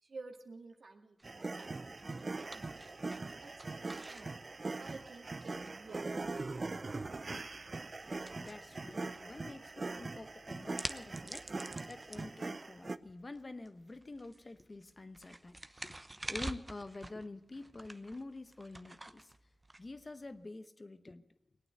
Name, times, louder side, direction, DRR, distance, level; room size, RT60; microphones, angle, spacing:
voice 1, 0.0-4.4 4.8-6.7, right 3 dB, 75° right, 3 dB, 2.0 m, -53 dB
sound 1, 1.2-20.4, right 1 dB, 25° right, 0.9 m, -50 dB
sound 2, 1.2-13.0, right 3 dB, 50° right, 0.6 m, -42 dB
voice 2, 8.4-19.3 19.8-21.3, left 2 dB, 40° left, 11 dB, 1.0 m, -48 dB
20.0 x 9.1 x 7.9 m, 0.82 s
cardioid pair, 50°, 0 cm